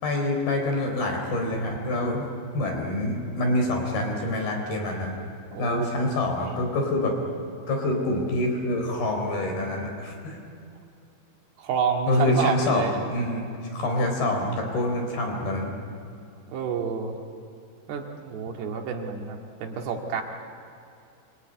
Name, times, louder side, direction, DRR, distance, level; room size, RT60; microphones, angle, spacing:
voice 1, 0.0-2.3 2.5-5.2 5.6-7.2 7.7-10.4 12.1-15.7, left 1 dB, 60° left, 2 dB, 5.6 m, -26 dB
voice 2, 5.5-5.9 6.4-6.6 11.6-13.1 16.5-17.2 17.9-20.2, right 6 dB, 70° right, 2 dB, 4.1 m, -29 dB
26.5 x 22.5 x 9.6 m, 2.5 s
omnidirectional pair, 5.2 m